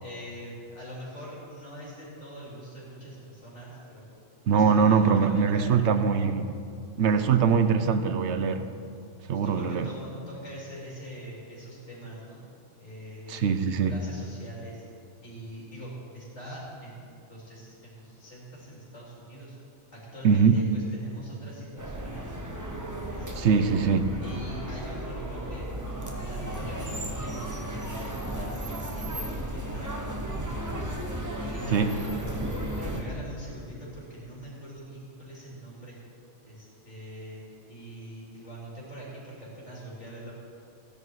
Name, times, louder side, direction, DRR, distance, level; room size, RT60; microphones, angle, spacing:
voice 1, 0.0-4.1 4.5-5.7 7.2-7.3 9.3-12.4 12.8-13.5 13.9-14.8 15.2-19.6 19.9-22.5 23.0-23.7 24.2-25.7 26.1-29.9 31.4-32.3 32.7-36.0 36.5-37.4 37.7-40.4, equal, 70° left, -6 dB, 4.3 m, -43 dB
voice 2, 4.5-6.5 7.0-8.6 9.3-9.9 13.3-13.9 20.2-20.6 23.4-24.1 31.7-32.0, right 6 dB, 70° right, 10 dB, 1.0 m, -22 dB
sound 1, 21.8-33.0, right 1 dB, 15° right, 1.2 m, -34 dB
15.5 x 10.5 x 4.8 m, 2.4 s
omnidirectional pair, 1.3 m